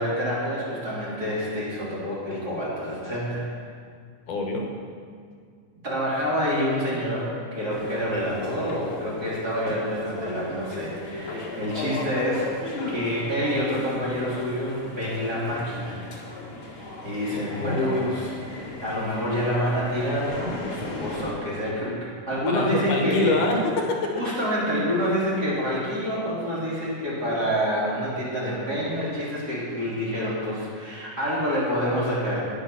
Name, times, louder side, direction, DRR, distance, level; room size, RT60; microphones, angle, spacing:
voice 1, 0.0-3.5 5.8-12.5 12.9-16.0 16.6-23.4 24.2-32.4, equal, 30° right, -8 dB, 3.6 m, -27 dB
voice 2, 4.3-4.7 17.3-18.1 22.5-24.1, left 2 dB, 75° left, 1 dB, 2.6 m, -25 dB
sound 1, 7.7-21.3, left 3 dB, 45° left, 2.2 m, -37 dB
12.5 x 9.9 x 5.8 m, 2.2 s
omnidirectional pair, 3.7 m